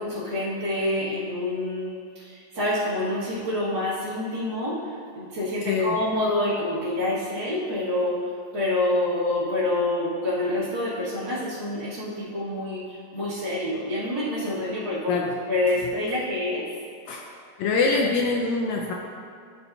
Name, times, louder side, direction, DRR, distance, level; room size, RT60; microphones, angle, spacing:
voice 1, 0.0-8.3 8.5-16.7, left 1 dB, 40° right, -13 dB, 2.0 m, -27 dB
voice 2, 5.7-6.0 15.1-15.3 17.1-17.2 17.6-18.9, left 4 dB, 80° left, 0 dB, 1.7 m, -24 dB
14.0 x 5.5 x 2.7 m, 2.3 s
omnidirectional pair, 3.8 m